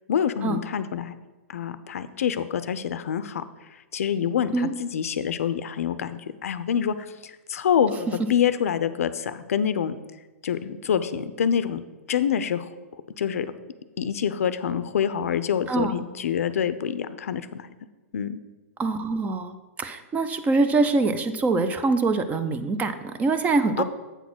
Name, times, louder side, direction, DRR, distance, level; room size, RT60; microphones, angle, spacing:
voice 1, 0.1-1.1 1.5-3.4 3.9-7.0 7.2-10.0 10.4-11.8 12.1-12.7 13.2-13.5 14.0-17.7 18.1-18.4 23.8-23.9, left 8 dB, 75° left, 13 dB, 0.5 m, -26 dB
voice 2, 18.8-23.8, right 3 dB, 20° right, 11 dB, 0.5 m, -24 dB
8.0 x 4.0 x 6.1 m, 1.2 s
hypercardioid pair, 125°, 8 cm